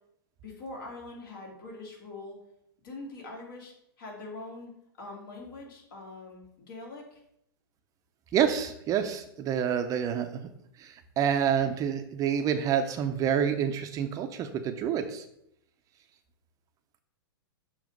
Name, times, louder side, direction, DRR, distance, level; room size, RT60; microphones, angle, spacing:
voice 1, 0.4-2.4 2.8-7.2, left 2 dB, 60° left, -1 dB, 2.4 m, -43 dB
voice 2, 8.3-10.5 10.8-15.2, right 8 dB, 30° right, 7 dB, 0.5 m, -28 dB
6.9 x 2.8 x 5.2 m, 0.76 s
hypercardioid pair, 120°, 13 cm